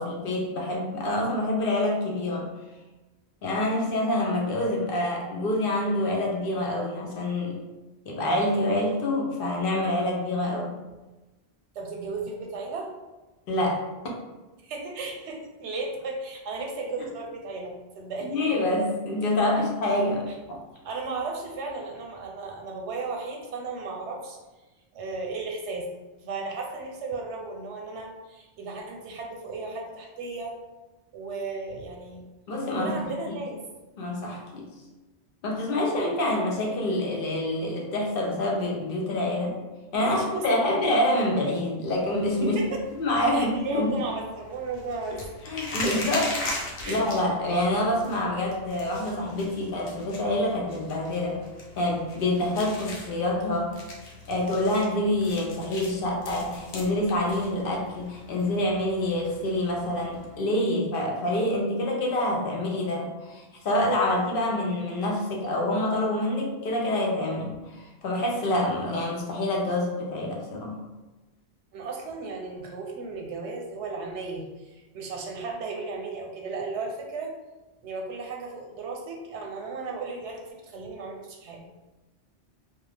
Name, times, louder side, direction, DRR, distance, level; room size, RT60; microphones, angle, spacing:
voice 1, 0.0-2.5 3.4-7.6 8.1-10.7 13.5-13.8 18.3-20.6 32.5-33.0 34.0-34.7 35.4-39.6 39.9-42.6 43.0-44.0 45.1-45.2 45.5-51.4 51.8-53.7 54.3-70.8, left 1 dB, 60° left, -1 dB, 0.7 m, -26 dB
voice 2, 11.7-12.9 14.6-18.4 20.8-24.4 24.9-25.9 26.2-30.5 31.1-32.2 32.8-33.6 39.9-40.8 42.4-42.8 43.3-45.2 46.8-47.0 71.7-77.3 77.8-81.8, right 3 dB, 85° right, 1 dB, 0.9 m, -35 dB
sound 1, 41.9-60.4, left 2 dB, 85° left, 0.9 m, -40 dB
2.3 x 2.1 x 3.2 m, 1.1 s
omnidirectional pair, 1.1 m